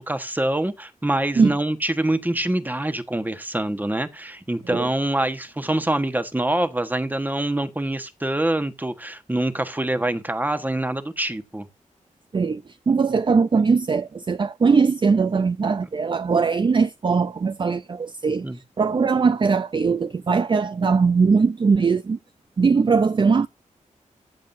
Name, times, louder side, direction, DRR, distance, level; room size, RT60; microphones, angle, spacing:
voice 1, 0.0-11.7 18.4-18.6, right 1 dB, 15° right, 1.3 m, -25 dB
voice 2, 12.3-18.5 18.8-22.2 22.6-23.5, right 5 dB, 35° right, 0.4 m, -20 dB
14.0 x 7.6 x 2.7 m
wide cardioid pair, 80°, 13 cm